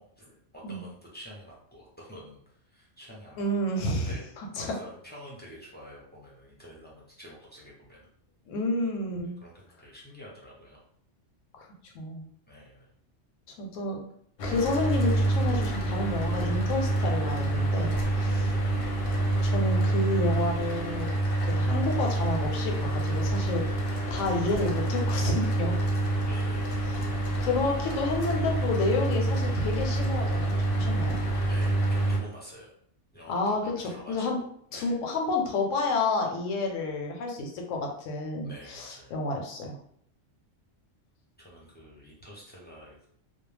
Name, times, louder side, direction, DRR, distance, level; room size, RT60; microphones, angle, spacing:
voice 1, 0.0-3.4 3.9-8.1 9.2-10.8 12.5-12.9 17.9-18.9 26.2-26.9 31.5-32.7 33.1-34.3 34.7-35.0 38.4-39.1 41.4-43.1, equal, 15° left, -5 dB, 0.4 m, -48 dB
voice 2, 3.4-4.1 4.4-4.7 8.5-9.3 11.6-12.3 13.5-14.0 14.4-17.9 19.4-21.1 21.4-23.6 24.1-25.8 27.4-31.2 33.3-34.4 34.7-39.8, left 2 dB, 85° left, 1 dB, 1.0 m, -30 dB
Mechanical fan, 14.4-32.2, right 2 dB, 60° left, 0.7 m, -27 dB
2.3 x 2.1 x 3.2 m, 0.66 s
omnidirectional pair, 1.3 m